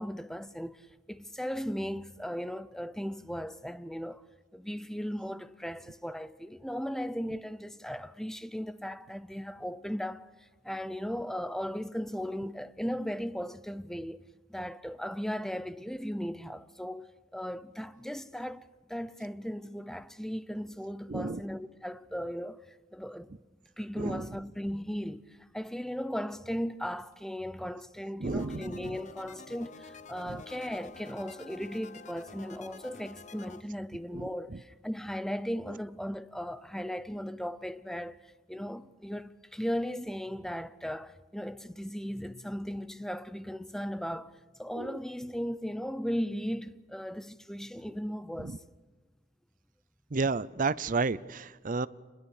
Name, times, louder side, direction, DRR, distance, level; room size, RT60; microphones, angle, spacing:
voice 1, 0.0-4.2 4.5-10.3 10.6-14.2 14.5-17.1 17.3-23.3 23.8-48.6, equal, 5° left, 0.7 m, -37 dB
voice 2, 21.1-21.4 24.0-24.2 28.2-29.0 30.3-30.4 34.1-34.3 44.8-44.9 48.4-48.6 50.1-51.9, right 4 dB, 45° right, 0.6 m, -32 dB
sound 1, 28.3-33.6, left 4 dB, 40° left, 0.8 m, -49 dB
27.5 x 21.5 x 6.6 m
head